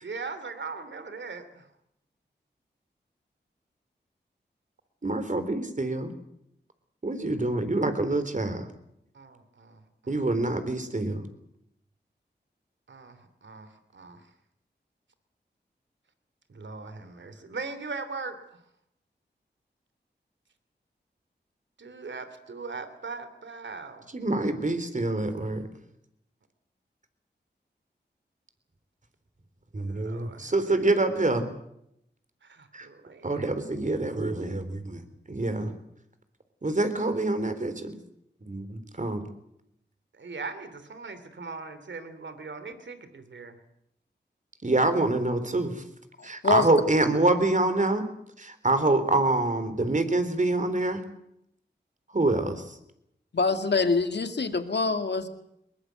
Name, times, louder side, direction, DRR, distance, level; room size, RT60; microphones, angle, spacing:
voice 1, 0.0-1.7 9.1-10.3 12.9-14.3 16.5-18.4 21.8-24.1 29.9-30.8 32.4-33.5 40.1-43.6, right 4 dB, 85° right, 10 dB, 3.0 m, -40 dB
voice 2, 5.0-6.1 7.0-8.7 10.1-11.3 24.1-25.6 29.7-31.5 32.7-32.9 33.2-35.0 35.3-35.7 36.6-38.0 38.5-39.3 44.6-45.8 46.2-48.0 48.4-51.0 52.1-52.8, right 2 dB, 45° right, 10 dB, 3.8 m, -26 dB
voice 3, 46.2-46.7 53.3-55.3, left 4 dB, 70° left, 7 dB, 2.3 m, -25 dB
22.0 x 21.5 x 8.0 m, 0.77 s
cardioid pair, 55°, 19 cm